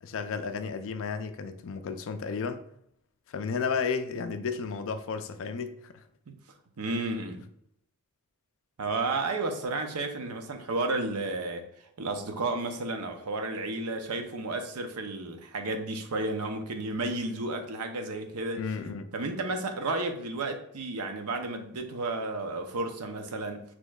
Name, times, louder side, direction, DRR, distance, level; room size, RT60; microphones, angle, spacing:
voice 1, 0.0-2.6 3.3-6.0 18.6-19.1, left 5 dB, 65° left, 0.4 m, -33 dB
voice 2, 6.8-7.5 8.8-11.7 12.0-18.6 19.1-23.6, right 2 dB, 90° right, 0.7 m, -32 dB
6.3 x 3.0 x 2.3 m
head